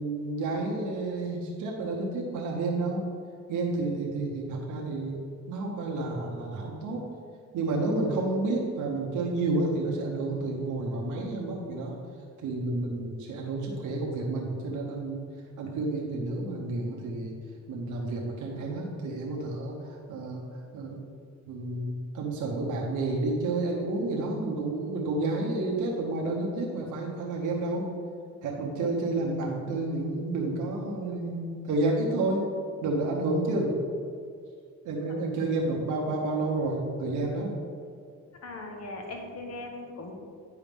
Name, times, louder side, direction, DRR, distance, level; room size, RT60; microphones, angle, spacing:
voice 1, 0.0-3.1 3.5-7.0 7.5-12.0 12.4-15.2 15.6-17.3 17.7-20.4 20.7-21.0 21.5-27.9 28.4-32.5 32.8-33.7 34.8-37.5, right 2 dB, 90° right, -1 dB, 1.1 m, -30 dB
voice 2, 38.4-40.1, left 2 dB, 60° left, 2 dB, 1.3 m, -39 dB
9.5 x 4.7 x 3.6 m, 2.2 s
cardioid pair, 85°, 29 cm